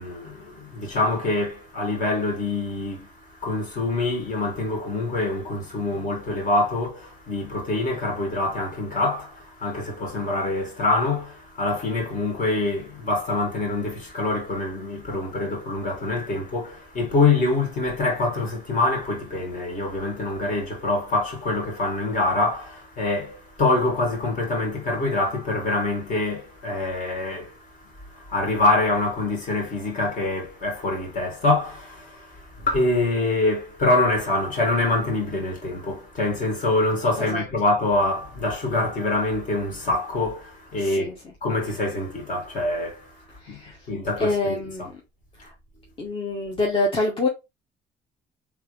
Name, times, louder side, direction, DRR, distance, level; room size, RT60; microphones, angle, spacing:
voice 1, 0.0-41.1 41.4-43.6 43.9-44.9, left 2 dB, 50° left, 2.3 m, -25 dB
voice 2, 40.8-41.1 43.4-43.8 44.2-45.0 45.4-45.5 46.0-47.3, left 2 dB, 30° left, 1.1 m, -26 dB
3.5 x 3.4 x 3.2 m
cardioid pair, 110°, 17 cm